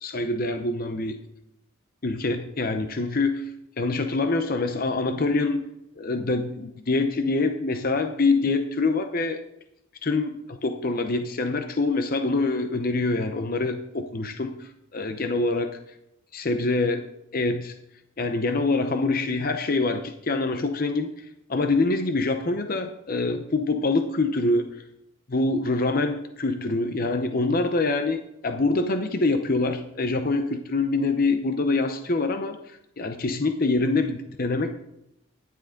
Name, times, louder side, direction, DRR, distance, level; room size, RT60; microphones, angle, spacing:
voice 1, 0.0-1.2 2.0-3.5 3.8-5.6 6.0-9.4 10.0-15.7 16.3-17.0 17.3-17.7 18.2-21.1 21.5-24.7 25.3-34.7, left 3 dB, 45° left, 7 dB, 0.7 m, -25 dB
12.5 x 10.5 x 3.8 m, 0.83 s
head